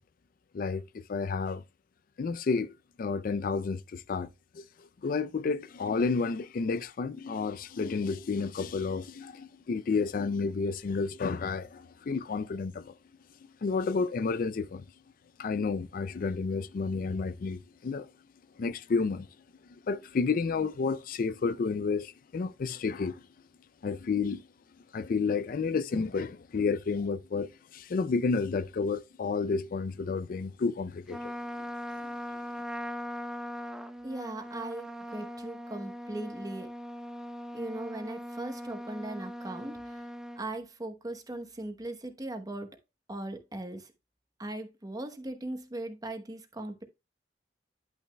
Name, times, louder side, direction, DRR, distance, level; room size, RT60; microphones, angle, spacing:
voice 1, 0.5-1.6 2.2-2.7 3.0-4.3 4.5-12.9 13.4-14.8 15.4-18.1 18.6-19.3 19.8-23.2 23.8-24.5 24.9-31.3 32.0-32.1, left 4 dB, 50° left, 0.4 m, -31 dB
Trumpet, 31.1-40.4, equal, 5° right, 0.5 m, -40 dB
voice 2, 34.0-36.7 37.5-40.1 40.4-42.7 43.1-43.9 44.4-46.8, right 1 dB, 20° right, 1.0 m, -39 dB
10.5 x 6.0 x 2.2 m
head